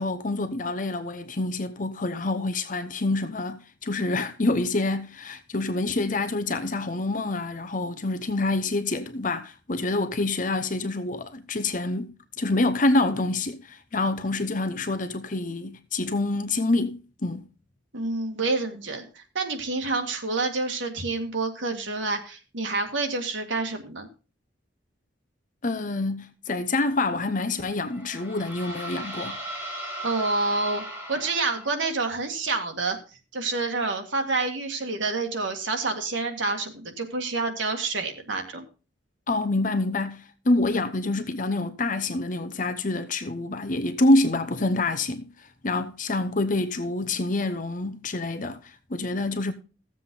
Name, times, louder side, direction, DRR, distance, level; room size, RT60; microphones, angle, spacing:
voice 1, 0.0-17.5 25.6-29.4 39.3-49.5, left 2 dB, 45° left, 0.8 m, -27 dB
voice 2, 17.9-24.1 30.0-30.8 31.1-33.0 33.3-38.7, right 3 dB, 85° right, 2.0 m, -28 dB
sound 1, 27.6-32.0, right 1 dB, 10° right, 2.4 m, -37 dB
15.0 x 7.5 x 3.8 m
head